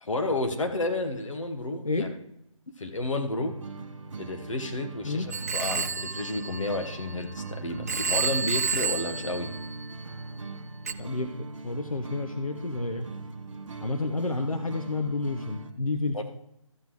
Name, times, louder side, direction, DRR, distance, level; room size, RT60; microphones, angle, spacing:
voice 1, 0.0-2.1 2.8-3.5 4.2-9.5 16.1-16.2, left 2 dB, 65° left, 4 dB, 1.3 m, -31 dB
sound 1, 3.4-15.7, right 3 dB, 60° right, 1.0 m, -40 dB
Telephone, 5.3-7.4 7.9-10.2 10.9-11.0, right 5 dB, 25° right, 0.4 m, -31 dB
voice 2, 11.0-13.1 13.8-16.2, left 3 dB, 85° left, 6 dB, 0.9 m, -30 dB
13.5 x 8.5 x 3.1 m, 0.79 s
figure-of-eight pair, 150°, 18 cm